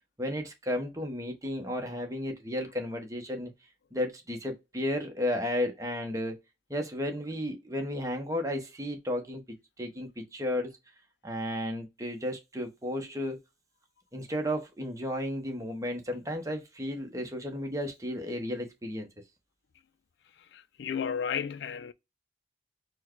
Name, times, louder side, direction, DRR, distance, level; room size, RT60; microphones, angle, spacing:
voice 1, 0.2-3.5 3.9-6.4 6.7-9.4 9.8-10.7 11.2-13.4 14.1-19.1, left 1 dB, 20° right, 0.9 m, -33 dB
voice 2, 20.5-21.9, left 7 dB, 75° left, 0.4 m, -33 dB
4.4 x 2.2 x 4.4 m
head